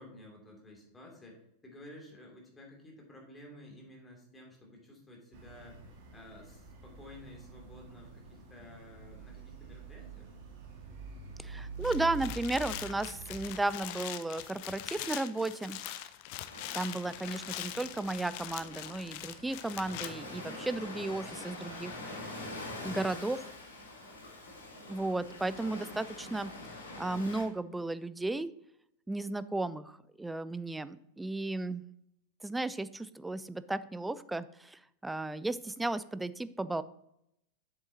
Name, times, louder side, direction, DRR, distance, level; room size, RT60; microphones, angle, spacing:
voice 1, 0.0-5.8 6.1-10.3, left 1 dB, 15° left, 0 dB, 2.5 m, -52 dB
sound 1, 5.3-13.4, right 4 dB, 45° right, 1.6 m, -45 dB
voice 2, 11.4-15.8 16.7-22.4 22.8-23.5 24.9-26.5 27.0-28.5 29.1-31.8 32.4-36.8, right 2 dB, 5° right, 15 dB, 0.3 m, -34 dB
sound 2, 11.7-20.1, left 13 dB, 45° left, 0.5 m, -42 dB
Ocean, 16.5-27.4, left 2 dB, 70° left, 1.9 m, -45 dB
8.0 x 7.1 x 2.7 m, 0.78 s
figure-of-eight pair, 90°, 0 cm